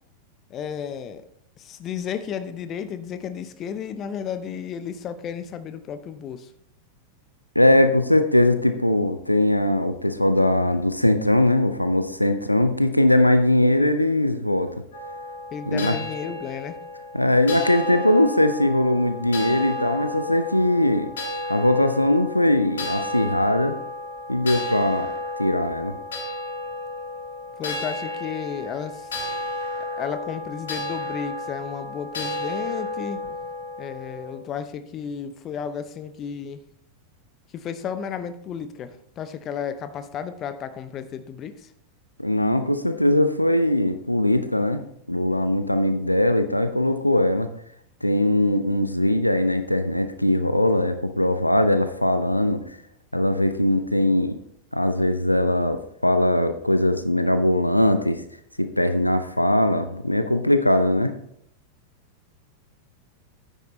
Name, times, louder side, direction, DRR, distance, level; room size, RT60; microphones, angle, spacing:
voice 1, 0.5-1.2 1.6-6.5 15.5-16.8 27.6-29.1 29.8-33.2 33.8-36.6 37.5-41.7, left 7 dB, 30° left, 11 dB, 0.8 m, -33 dB
voice 2, 7.6-14.7 15.7-16.0 17.1-21.1 21.5-23.8 24.3-25.1 25.4-26.0 42.2-44.8 45.1-47.5 48.0-52.6 53.1-54.4 54.7-58.2 58.6-61.1, left 1 dB, 85° left, 9 dB, 0.6 m, -20 dB
sound 1, 14.9-34.3, left 2 dB, 65° left, 3.4 m, -32 dB
9.5 x 9.1 x 3.2 m, 0.69 s
figure-of-eight pair, 90°, 0 cm